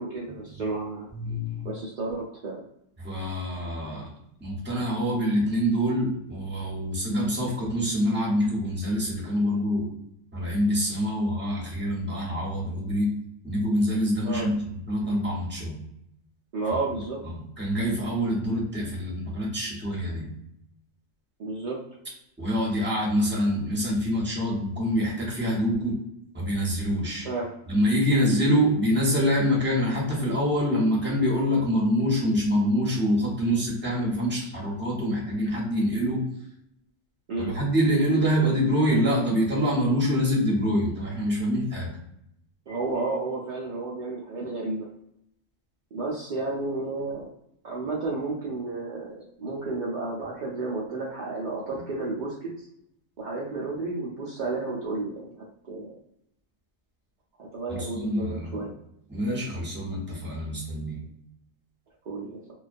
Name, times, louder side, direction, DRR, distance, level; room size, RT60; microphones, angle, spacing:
voice 1, 0.0-1.1 1.6-2.6 14.2-14.5 16.5-17.2 21.4-21.8 27.2-27.5 37.3-37.5 42.7-44.9 45.9-47.3 47.6-52.3 53.2-56.0 57.4-58.7 62.1-62.4, right 3 dB, 75° right, -5 dB, 0.4 m, -32 dB
voice 2, 1.1-1.7 3.0-4.1 4.4-9.9 10.3-13.2 13.4-15.8 17.2-20.3 22.4-26.0 26.3-27.3 27.7-36.2 37.4-41.9 57.7-58.6 59.1-61.0, equal, 10° right, -4 dB, 0.6 m, -25 dB
2.2 x 2.2 x 2.5 m, 0.77 s
omnidirectional pair, 1.4 m